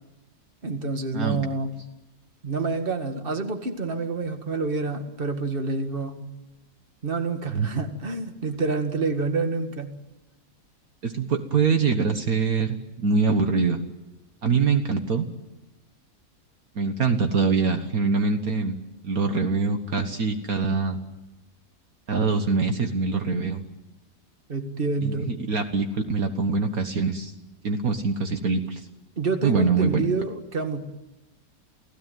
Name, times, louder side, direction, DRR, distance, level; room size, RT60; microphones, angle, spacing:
voice 1, 0.6-1.7 2.4-6.3 7.0-9.9 24.5-25.3 29.2-30.8, right 3 dB, 35° right, 6 dB, 2.0 m, -28 dB
voice 2, 11.0-13.8 14.4-15.3 16.7-18.8 19.0-21.0 22.1-23.6 25.0-27.3 27.6-28.8 29.4-30.0, right 4 dB, 60° right, 6 dB, 1.8 m, -24 dB
29.0 x 16.5 x 9.3 m, 1.0 s
omnidirectional pair, 1.7 m